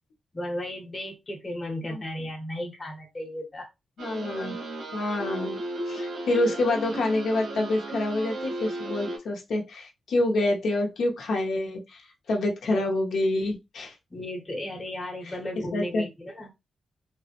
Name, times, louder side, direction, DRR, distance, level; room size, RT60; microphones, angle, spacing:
voice 1, 0.3-3.7 12.7-12.8 14.1-16.5, left 1 dB, 20° left, 0.9 m, -35 dB
voice 2, 4.0-4.5 4.9-5.6 5.9-12.0 12.3-13.9 15.3-15.4 15.7-16.0, left 2 dB, 70° left, 0.7 m, -27 dB
sound 1, 4.0-9.2, right 1 dB, 90° right, 1.3 m, -35 dB
3.3 x 2.1 x 2.8 m
wide cardioid pair, 160°, 0 cm